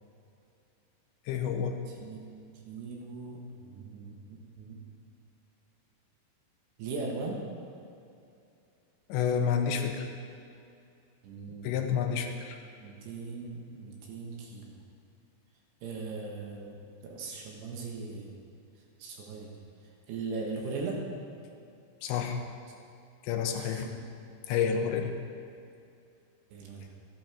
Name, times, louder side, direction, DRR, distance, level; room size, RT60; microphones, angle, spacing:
voice 1, 1.3-1.8 9.1-10.1 11.6-12.6 22.0-22.4 23.2-23.9 24.5-25.2, left 7 dB, 90° left, 4 dB, 3.2 m, -29 dB
voice 2, 1.9-4.8 6.8-7.4 11.2-11.7 12.8-14.8 15.8-18.4 19.0-19.6 20.1-21.0 23.5-23.8 26.5-26.9, right 4 dB, 75° right, -1 dB, 3.5 m, -39 dB
14.0 x 11.5 x 4.5 m, 2.6 s
omnidirectional pair, 5.0 m